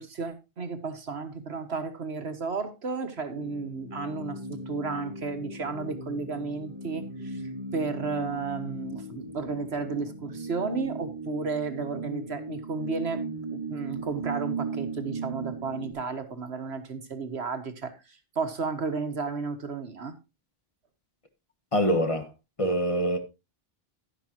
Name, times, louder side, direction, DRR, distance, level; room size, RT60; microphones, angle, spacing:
voice 1, 0.0-7.4 7.7-13.2 13.5-20.2, right 4 dB, 90° right, 1.8 m, -33 dB
sound 1, 3.3-15.9, right 3 dB, 35° right, 4.0 m, -37 dB
voice 2, 21.7-22.3 22.6-23.2, equal, 30° left, 1.5 m, -24 dB
11.5 x 11.0 x 2.9 m
omnidirectional pair, 1.1 m